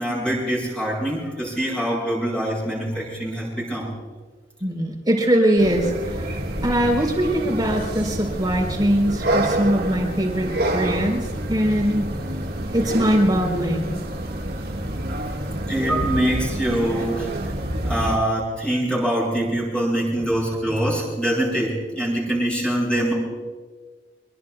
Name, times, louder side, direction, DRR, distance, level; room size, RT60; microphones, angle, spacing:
voice 1, 0.0-3.9 15.7-17.6 17.8-23.1, right 1 dB, 5° left, -5 dB, 6.7 m, -24 dB
voice 2, 4.6-12.1 12.7-13.9, equal, 25° right, 0 dB, 4.1 m, -22 dB
sound 1, 5.6-18.2, right 1 dB, 60° right, 1.8 m, -27 dB
25.5 x 22.5 x 2.4 m, 1.4 s
head